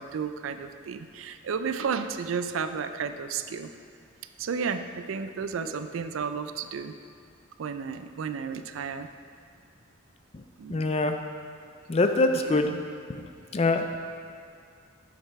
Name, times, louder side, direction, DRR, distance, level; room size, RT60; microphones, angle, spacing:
voice 1, 0.0-3.7 4.4-6.9 7.6-9.1 10.6-11.0 12.4-12.8, right 6 dB, 85° right, 10 dB, 0.4 m, -33 dB
voice 2, 10.7-11.1 11.9-12.7 13.2-13.3 13.5-14.0, left 2 dB, 30° left, 6 dB, 0.4 m, -24 dB
6.5 x 6.5 x 4.7 m, 2.3 s
head